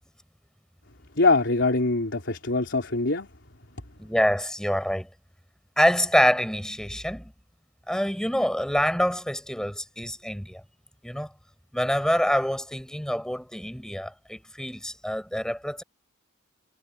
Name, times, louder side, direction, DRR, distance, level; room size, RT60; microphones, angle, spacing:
voice 1, 1.2-3.3, left 3 dB, 60° left, 3.7 m, -23 dB
voice 2, 4.0-5.1 5.8-7.3 7.9-10.6 11.0-11.3 11.7-15.8, equal, 5° left, 6.7 m, -26 dB
head